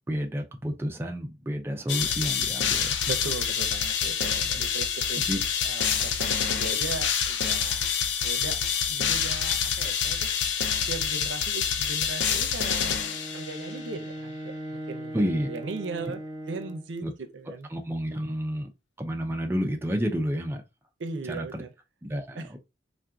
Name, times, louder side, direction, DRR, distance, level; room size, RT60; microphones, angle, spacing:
voice 1, 0.1-3.0 5.3-5.4 15.1-15.5 17.0-17.1 17.7-18.7 19.0-20.6 21.3-21.6 22.1-22.6, equal, 10° right, 0.4 m, -30 dB
sound 1, 1.9-13.8, left 7 dB, 75° left, 0.5 m, -27 dB
voice 2, 3.1-5.3 5.6-7.9 8.2-10.3 10.9-13.0 13.3-16.2 16.5-17.7 21.0-21.7 22.4-22.6, right 4 dB, 80° right, 0.5 m, -38 dB
Bowed string instrument, 12.8-17.0, right 1 dB, 50° left, 1.4 m, -39 dB
3.6 x 2.5 x 2.3 m
head